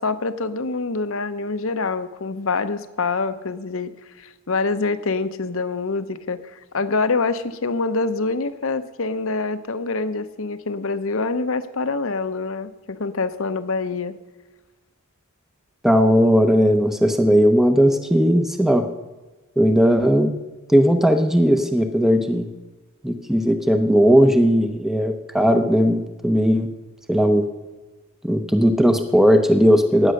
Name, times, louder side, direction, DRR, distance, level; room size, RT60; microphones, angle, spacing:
voice 1, 0.0-14.2, left 3 dB, 65° left, 11 dB, 0.8 m, -25 dB
voice 2, 15.8-18.9 19.6-20.3 20.7-22.5 23.0-26.7 27.1-27.4 28.2-30.1, equal, ahead, 7 dB, 0.8 m, -17 dB
16.0 x 9.8 x 6.5 m, 1.2 s
head